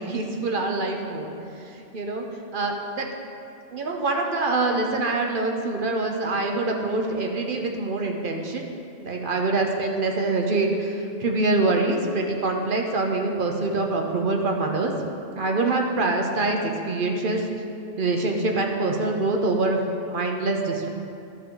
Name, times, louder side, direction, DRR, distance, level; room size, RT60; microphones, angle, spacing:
voice 1, 0.0-1.3 1.7-2.3 2.5-3.1 3.7-8.6 9.0-14.9 15.4-17.5 18.0-20.9, right 2 dB, 50° right, 2 dB, 0.9 m, -25 dB
12.0 x 5.4 x 3.8 m, 2.5 s
omnidirectional pair, 1.2 m